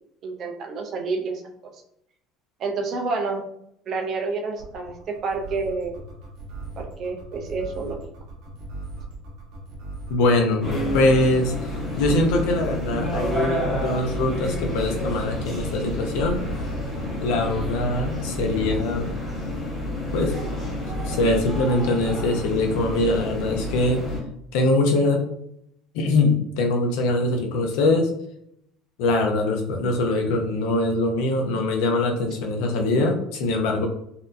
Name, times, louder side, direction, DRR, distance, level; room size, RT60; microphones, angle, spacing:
voice 1, 0.2-1.4 2.6-3.4 3.9-6.0 6.8-8.0, right 4 dB, 35° right, 3 dB, 0.5 m, -29 dB
sound 1, 4.6-19.0 20.8-21.4, right 3 dB, 65° right, 1.4 m, -38 dB
voice 2, 10.1-10.7 10.9-11.5 12.0-16.4 17.2-19.1 20.1-20.3 21.0-24.0 24.5-25.2 25.9-28.1 29.0-33.9, left 2 dB, 75° left, 3 dB, 0.7 m, -22 dB
sound 2, 10.6-24.2, left 1 dB, 20° left, 1.1 m, -29 dB
4.2 x 2.6 x 2.6 m, 0.74 s
cardioid pair, 165°, 0 cm